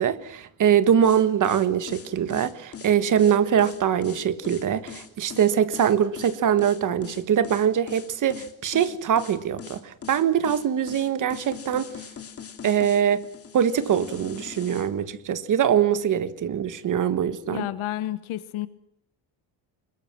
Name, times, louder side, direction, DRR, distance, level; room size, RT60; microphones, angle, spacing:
voice 1, 0.0-11.9 12.6-13.2 13.5-17.7, right 9 dB, 40° right, 1.6 m, -23 dB
sound 1, 1.0-14.9, left 7 dB, 30° left, 2.7 m, -41 dB
voice 2, 17.5-18.7, left 13 dB, 80° left, 1.4 m, -30 dB
26.5 x 22.0 x 6.1 m
cardioid pair, 175°, 48 cm